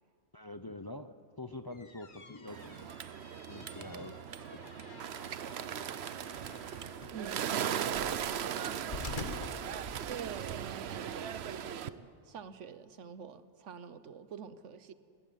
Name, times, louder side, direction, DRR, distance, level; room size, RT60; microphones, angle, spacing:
voice 1, 0.3-2.9 3.5-4.2 4.5-5.0, left 2 dB, 25° left, 0.5 m, -46 dB
sound 1, 1.5-10.4, left 3 dB, 45° left, 1.5 m, -48 dB
Bird, 2.5-11.9, right 9 dB, 65° right, 0.9 m, -38 dB
voice 2, 7.1-7.9 8.5-8.8 10.0-14.9, right 7 dB, 90° right, 1.3 m, -46 dB
19.5 x 19.5 x 9.1 m
omnidirectional pair, 1.2 m